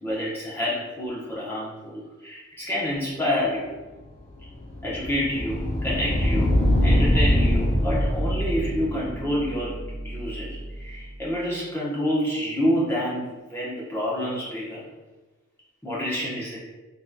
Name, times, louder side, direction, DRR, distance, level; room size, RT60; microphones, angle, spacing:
voice 1, 0.0-3.7 4.8-6.5 6.8-9.7 10.0-14.8 15.8-16.6, equal, 10° left, -7 dB, 0.9 m, -28 dB
sound 1, 4.0-10.9, equal, 35° left, 0.4 m, -24 dB
3.8 x 3.0 x 2.2 m, 1.2 s
head